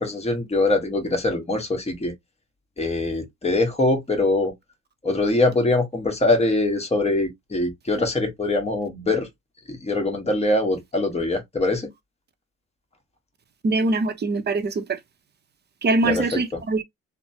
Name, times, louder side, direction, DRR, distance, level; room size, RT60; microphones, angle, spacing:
voice 1, 0.0-2.1 2.8-4.5 5.0-9.3 9.7-11.9 16.0-16.6, left 2 dB, 20° left, 1.3 m, -23 dB
voice 2, 13.6-15.0 15.8-16.8, right 3 dB, 35° right, 0.7 m, -23 dB
3.2 x 2.1 x 2.7 m
cardioid pair, 90°, 30 cm